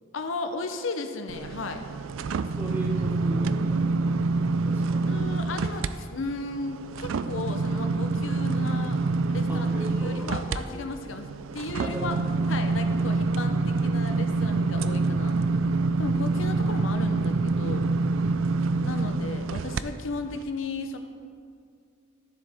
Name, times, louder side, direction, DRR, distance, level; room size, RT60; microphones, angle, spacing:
voice 1, 0.1-1.8 5.1-9.0 9.3-9.7 9.9-11.3 11.5-12.2 12.5-15.4 16.0-17.9 18.8-21.0, left 3 dB, 85° left, 6 dB, 0.7 m, -35 dB
sound 1, 1.3-5.9 6.3-19.8 20.3-20.4, right 3 dB, 90° right, 0.4 m, -26 dB
voice 2, 2.5-5.1 9.5-10.8 11.8-12.2, right 1 dB, 10° right, -2 dB, 1.2 m, -38 dB
12.5 x 7.5 x 3.5 m, 2.2 s
head